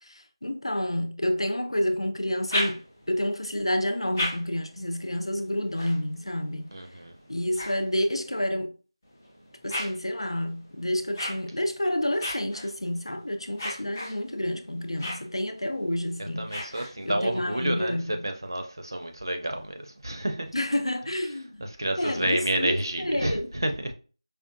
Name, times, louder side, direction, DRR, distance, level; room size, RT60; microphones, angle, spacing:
voice 1, 0.0-2.8 3.1-6.7 7.3-8.7 9.6-18.2 20.5-21.7 22.0-23.5, left 1 dB, 90° left, 0.7 m, -29 dB
sound 1, 2.2-3.2 3.8-8.4 9.0-17.3, left 1 dB, 5° left, 0.5 m, -38 dB
voice 2, 6.7-7.1 16.2-18.0 18.2-20.5 21.6-23.9, right 1 dB, 50° right, 0.6 m, -30 dB
4.9 x 2.3 x 2.6 m
figure-of-eight pair, 180°, 3 cm